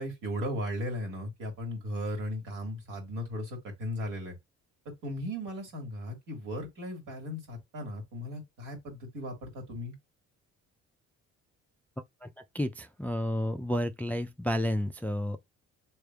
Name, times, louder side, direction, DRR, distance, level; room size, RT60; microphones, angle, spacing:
voice 1, 0.0-4.3 5.0-9.9, equal, 75° right, 1.9 m, -36 dB
voice 2, 12.5-15.5, left 1 dB, 5° left, 0.3 m, -31 dB
4.5 x 3.3 x 2.3 m
cardioid pair, 80°, 32 cm